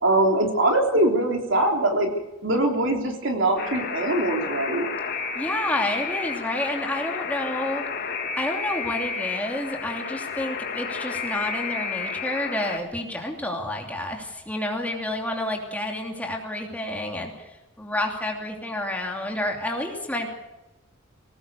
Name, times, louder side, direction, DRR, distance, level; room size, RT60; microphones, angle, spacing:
voice 1, 0.0-2.1 2.4-4.9, right 1 dB, 60° right, 2 dB, 3.5 m, -22 dB
Alarm, 3.6-12.8, left 5 dB, 45° left, 2.0 m, -31 dB
voice 2, 5.3-7.8 8.4-17.4 17.8-20.3, left 1 dB, 5° left, 1 dB, 2.8 m, -29 dB
21.5 x 19.0 x 6.9 m, 1.0 s
head